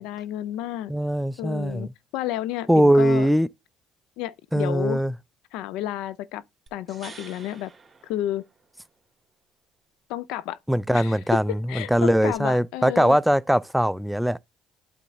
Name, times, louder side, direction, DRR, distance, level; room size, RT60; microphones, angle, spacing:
voice 1, 0.0-0.9 1.4-3.3 4.2-5.0 5.5-6.4 6.7-7.7 8.0-8.4 10.1-10.6 10.9-13.2, left 13 dB, 80° left, 0.4 m, -31 dB
voice 2, 0.9-1.9 2.7-3.5 4.5-5.1 10.7-14.4, equal, 5° right, 0.3 m, -21 dB
sound 1, 6.7-8.9 12.3-12.4, right 4 dB, 25° right, 1.9 m, -48 dB
8.4 x 3.9 x 3.5 m
supercardioid pair, 80°, 0 cm